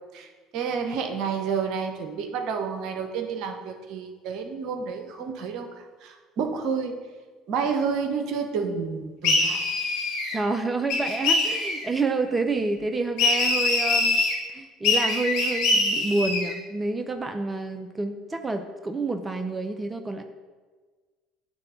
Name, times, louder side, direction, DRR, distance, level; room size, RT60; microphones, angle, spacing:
voice 1, 0.1-7.0 7.5-9.6, right 6 dB, 60° right, 6 dB, 1.0 m, -30 dB
sound 1, 9.2-10.4 10.9-11.9 13.2-14.3 14.8-16.5, left 2 dB, 70° left, 2.2 m, -23 dB
voice 2, 10.3-14.2 14.5-20.2, right 3 dB, 20° right, 7 dB, 0.7 m, -28 dB
9.8 x 3.4 x 7.0 m, 1.4 s
hypercardioid pair, 65°, 0 cm